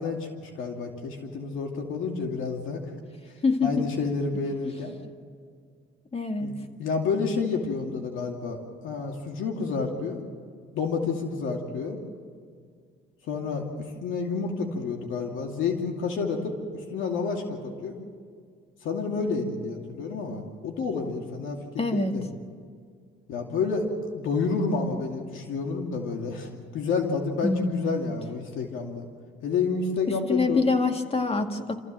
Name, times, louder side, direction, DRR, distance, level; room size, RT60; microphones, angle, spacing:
voice 1, 0.0-2.8 3.6-4.9 6.4-6.5 6.8-8.6 8.8-10.2 10.7-12.0 13.3-13.7 14.0-18.0 18.8-22.2 23.3-23.9 24.1-29.0 29.4-30.6, left 4 dB, 85° left, 2 dB, 2.6 m, -29 dB
voice 2, 3.4-3.9 4.6-4.7 6.1-6.5 21.8-22.1 27.4-28.1 30.1-31.8, left 3 dB, 30° left, 5 dB, 2.0 m, -25 dB
28.0 x 15.0 x 7.7 m, 2.1 s
cardioid pair, 90°, 20 cm